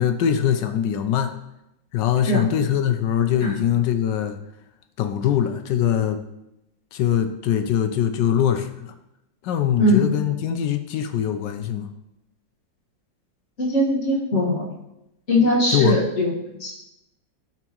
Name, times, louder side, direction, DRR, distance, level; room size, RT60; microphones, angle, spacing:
voice 1, 0.0-1.3 1.9-4.4 5.0-6.2 6.9-8.9 9.4-11.9 15.7-16.0, left 9 dB, 75° left, 8 dB, 1.2 m, -22 dB
voice 2, 13.6-14.7 15.3-16.3 16.6-16.7, left 1 dB, 40° left, -4 dB, 1.8 m, -20 dB
12.0 x 4.5 x 3.0 m, 0.88 s
omnidirectional pair, 2.1 m